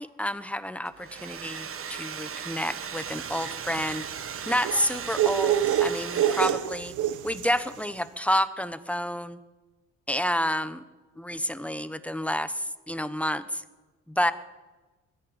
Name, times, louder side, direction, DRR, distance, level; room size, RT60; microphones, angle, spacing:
voice 1, 0.0-4.0 4.5-6.9 7.2-9.4 10.1-10.8 11.2-13.6 14.1-14.3, equal, 5° left, 12 dB, 1.2 m, -29 dB
Domestic sounds home sounds, 0.9-6.9, right 7 dB, 45° right, 1.4 m, -37 dB
sound 1, 3.1-7.7, right 10 dB, 80° right, 1.2 m, -27 dB
21.0 x 15.5 x 9.0 m, 1.2 s
cardioid pair, 90°, 30 cm